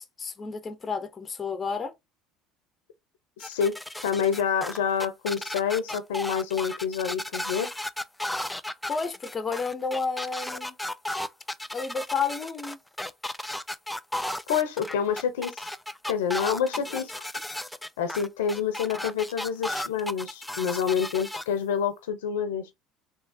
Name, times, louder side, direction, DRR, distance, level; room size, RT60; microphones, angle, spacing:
voice 1, 0.0-1.9 8.9-10.8 11.7-12.8 16.9-17.0, left 5 dB, 30° left, 0.9 m, -31 dB
voice 2, 3.4-3.7 4.0-7.7 14.5-15.7 16.1-17.1 18.0-22.7, left 7 dB, 85° left, 0.8 m, -27 dB
sound 1, 3.4-21.4, left 1 dB, 5° left, 0.4 m, -34 dB
3.7 x 2.7 x 2.7 m
hypercardioid pair, 75°, 0 cm